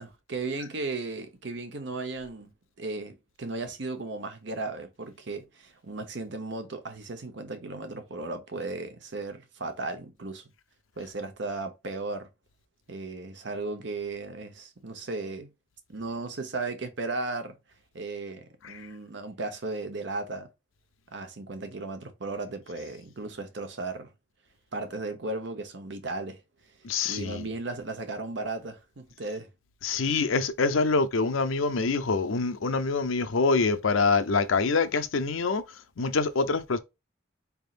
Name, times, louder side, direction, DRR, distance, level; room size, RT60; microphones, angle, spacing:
voice 1, 0.0-2.5 2.8-10.4 11.0-12.3 12.9-15.5 15.9-17.6 17.9-20.5 21.1-24.1 24.7-26.4 27.0-29.5, right 3 dB, 60° right, 0.9 m, -35 dB
voice 2, 26.8-27.5 29.8-35.6 36.0-36.8, left 4 dB, 85° left, 0.6 m, -25 dB
4.2 x 3.5 x 2.4 m
head